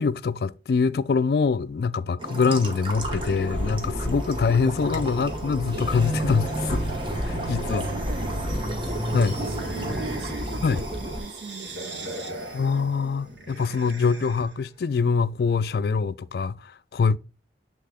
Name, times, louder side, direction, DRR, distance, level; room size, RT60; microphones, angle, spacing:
voice 1, 0.0-6.8 7.3-7.9 9.1-9.4 10.6-10.8 12.5-17.2, left 5 dB, 60° left, 0.3 m, -24 dB
sound 1, 2.2-12.6, right 1 dB, 30° right, 1.0 m, -32 dB
sound 2, 2.9-11.2, left 1 dB, 10° left, 1.6 m, -33 dB
voice 2, 7.6-12.6, right 4 dB, 55° right, 0.4 m, -40 dB
sound 3, 9.2-14.6, right 2 dB, 90° right, 1.7 m, -38 dB
7.6 x 3.6 x 3.6 m
head